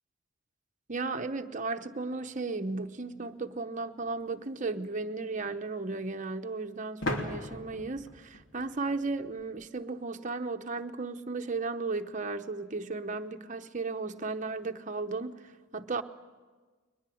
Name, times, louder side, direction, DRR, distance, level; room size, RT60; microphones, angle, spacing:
voice 1, 0.9-16.0, right 3 dB, 40° right, 0.9 m, -35 dB
sound 1, 4.0-4.1 7.0-9.7, left 1 dB, 80° left, 2.9 m, -38 dB
22.0 x 20.5 x 7.7 m
head